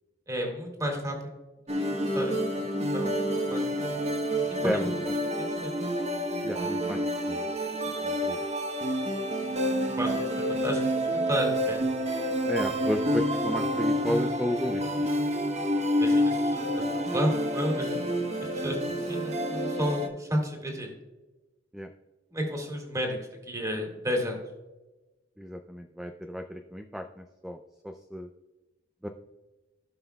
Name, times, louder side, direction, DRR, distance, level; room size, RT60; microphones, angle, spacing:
voice 1, 0.3-1.3 1.7-3.8 4.5-4.8 5.4-5.7 10.0-11.8 15.6-18.1 18.4-20.9 22.3-23.2 23.5-24.4, equal, 20° right, 1 dB, 2.2 m, -32 dB
sound 1, 1.7-20.1, equal, 35° right, 1.0 m, -28 dB
voice 2, 6.4-7.0 7.3-7.5 8.0-8.4 12.5-15.1 21.7-21.9 25.4-27.6 27.8-28.3 29.0-29.1, equal, 5° right, 6 dB, 0.4 m, -32 dB
17.0 x 5.7 x 2.3 m, 1.1 s
head